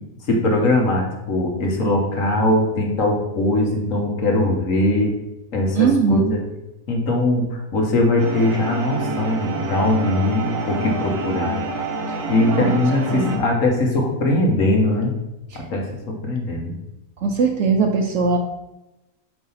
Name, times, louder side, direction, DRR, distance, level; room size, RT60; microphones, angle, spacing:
voice 1, 0.3-5.2 5.5-6.4 6.9-11.6 12.3-15.1 15.7-16.8, left 2 dB, 60° left, 1 dB, 1.6 m, -21 dB
voice 2, 5.7-6.3 12.1-12.2 12.5-12.7 13.1-13.4 15.5-15.6 17.2-18.4, right 4 dB, 60° right, 4 dB, 0.9 m, -20 dB
sound 1, 8.2-13.4, right 3 dB, 85° right, 1.7 m, -27 dB
5.0 x 4.8 x 5.6 m, 0.94 s
omnidirectional pair, 1.6 m